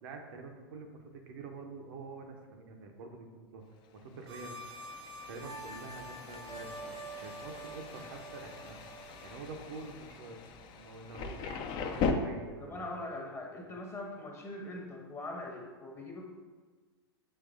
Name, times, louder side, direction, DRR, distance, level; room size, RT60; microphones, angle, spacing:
voice 1, 0.0-3.7 3.9-4.6 5.3-6.9 7.2-8.8 9.2-12.9 13.6-13.7, right 3 dB, 60° right, 3 dB, 0.7 m, -47 dB
Thunder, 4.0-12.1, left 5 dB, 35° left, 0.4 m, -40 dB
sound 1, 4.3-10.1, right 2 dB, 85° right, 1.3 m, -47 dB
voice 2, 12.6-16.2, left 2 dB, 20° left, 1 dB, 0.8 m, -42 dB
7.2 x 3.0 x 2.4 m, 1.4 s
hypercardioid pair, 100°, 13 cm